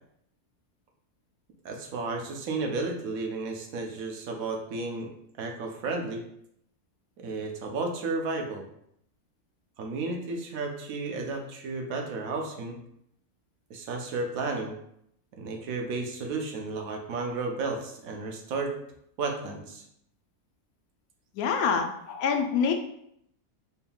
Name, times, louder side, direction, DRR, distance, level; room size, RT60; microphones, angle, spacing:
voice 1, 1.6-5.1 5.4-6.2 7.2-8.7 9.8-12.8 13.7-14.7 15.4-18.7 19.2-19.8, right 3 dB, 75° right, 3 dB, 1.1 m, -33 dB
voice 2, 21.3-22.7, left 6 dB, 90° left, 4 dB, 1.1 m, -26 dB
4.3 x 3.5 x 2.3 m, 0.73 s
omnidirectional pair, 1.5 m